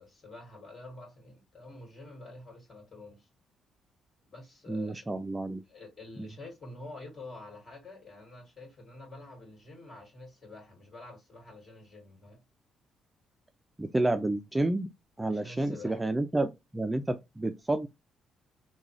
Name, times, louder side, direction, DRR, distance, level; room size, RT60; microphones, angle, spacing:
voice 1, 0.0-3.3 4.2-5.0 5.7-12.4 15.3-16.0, left 2 dB, 35° left, 2.0 m, -48 dB
voice 2, 4.7-5.6 6.2-6.3 13.8-14.9 15.2-17.9, right 2 dB, 15° right, 0.3 m, -30 dB
3.7 x 2.2 x 3.1 m
cardioid pair, 90°, 0 cm